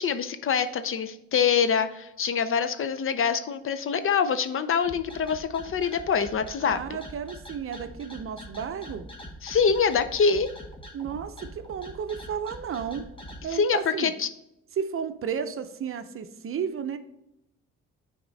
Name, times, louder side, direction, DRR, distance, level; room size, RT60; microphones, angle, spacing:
voice 1, 0.0-7.0 9.4-10.5 13.5-14.3, left 6 dB, 45° left, 11 dB, 0.5 m, -25 dB
sound 1, 4.8-13.4, equal, 15° left, 1.2 m, -43 dB
voice 2, 6.6-9.1 10.9-13.1 13.4-14.1 14.7-17.0, right 7 dB, 45° right, 10 dB, 0.6 m, -33 dB
9.3 x 3.6 x 4.0 m, 0.86 s
cardioid pair, 90°, 30 cm